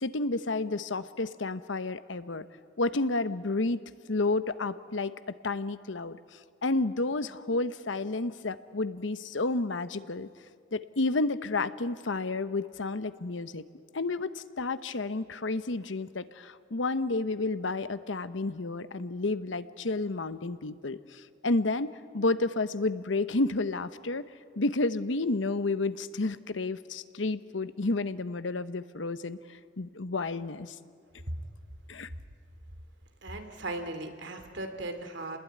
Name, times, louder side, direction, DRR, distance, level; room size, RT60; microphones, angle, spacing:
voice 1, 0.0-2.5 2.8-3.8 4.1-5.1 5.4-10.3 10.7-13.7 13.9-24.2 24.6-30.8 31.9-32.1, left 2 dB, 80° left, 13 dB, 0.9 m, -31 dB
voice 2, 33.2-35.4, right 2 dB, 70° right, 6 dB, 2.7 m, -37 dB
29.5 x 20.5 x 9.4 m, 2.2 s
head